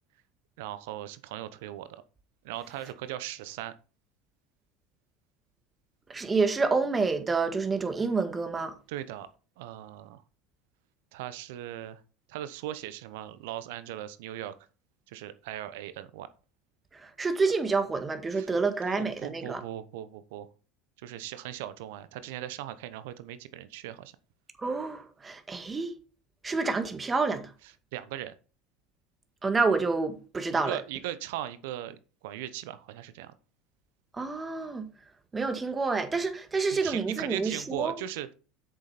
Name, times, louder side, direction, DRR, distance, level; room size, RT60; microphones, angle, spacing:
voice 1, 0.6-2.0 2.4-3.7 8.9-9.3 9.6-10.2 11.1-12.0 12.3-14.5 15.1-16.3 18.3-18.5 18.9-20.5 21.0-24.1 27.9-28.3 30.5-32.0 32.2-33.3 36.7-38.3, right 12 dB, 70° right, 0.9 m, -38 dB
voice 2, 6.1-8.7 16.9-19.6 24.6-25.9 26.4-27.5 29.4-30.8 34.1-34.9 35.3-38.0, right 4 dB, 25° right, 1.8 m, -28 dB
8.1 x 6.8 x 4.3 m
hypercardioid pair, 75°, 0 cm